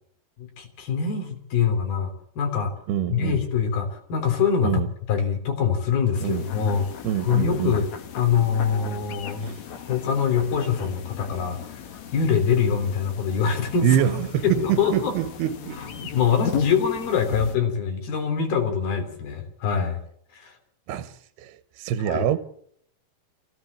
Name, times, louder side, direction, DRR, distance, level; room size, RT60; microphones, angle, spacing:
voice 1, 0.4-2.7 3.1-6.9 7.2-15.1 15.8-20.0 20.3-20.6 22.1-22.3, left 7 dB, 70° left, 5.3 m, -24 dB
voice 2, 2.9-3.4 4.6-4.9 6.2-6.4 7.0-7.8 9.4-9.6 13.8-15.8 20.9-22.4, right 10 dB, 80° right, 3.0 m, -25 dB
sound 1, 6.1-17.6, left 7 dB, 55° left, 2.5 m, -37 dB
24.5 x 16.5 x 8.6 m
omnidirectional pair, 4.5 m